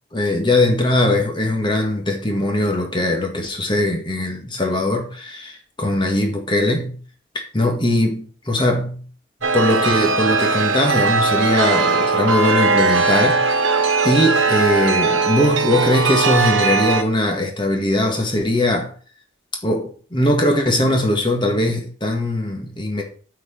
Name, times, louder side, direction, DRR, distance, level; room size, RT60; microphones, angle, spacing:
voice 1, 0.1-7.0 7.3-9.1 9.5-18.9 19.6-23.0, left 1 dB, 25° left, 1.7 m, -20 dB
Chime, 9.4-17.0, right 4 dB, 85° right, 1.2 m, -19 dB
9.0 x 4.7 x 4.4 m
head